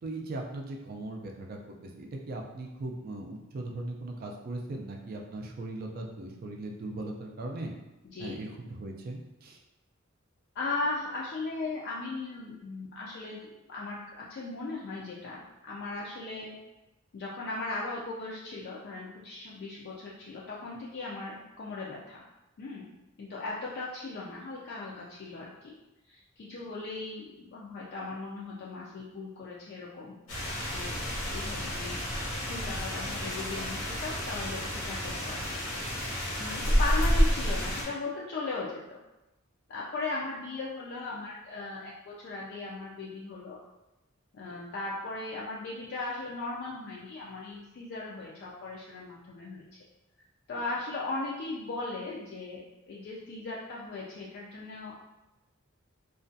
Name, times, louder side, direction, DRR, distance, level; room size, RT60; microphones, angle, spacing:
voice 1, 0.0-7.7 8.2-9.6, right 2 dB, 45° right, 1 dB, 0.4 m, -39 dB
voice 2, 10.5-16.6 17.1-22.2 22.6-22.9 23.2-25.7 26.1-30.2 30.7-30.9 31.2-36.1 36.4-39.0 39.7-43.6 44.3-49.6 50.5-54.9, left 3 dB, 50° left, -5 dB, 0.3 m, -38 dB
sound 1, 30.3-37.8, equal, 75° left, 0.8 m, -30 dB
2.4 x 2.2 x 2.5 m, 0.96 s
head